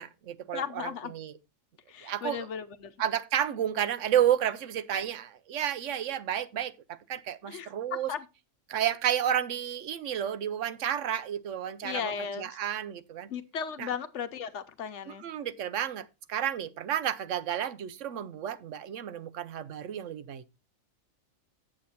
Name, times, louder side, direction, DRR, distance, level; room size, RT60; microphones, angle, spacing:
voice 1, 0.0-1.3 2.0-2.5 3.0-8.1 8.7-12.1 12.4-13.3 13.8-13.9 15.1-20.4, right 10 dB, 75° right, 1.0 m, -31 dB
voice 2, 0.5-1.1 1.9-2.9 7.4-8.3 11.8-12.6 13.3-15.2, left 7 dB, 65° left, 1.1 m, -36 dB
7.9 x 7.6 x 4.1 m
omnidirectional pair, 1.3 m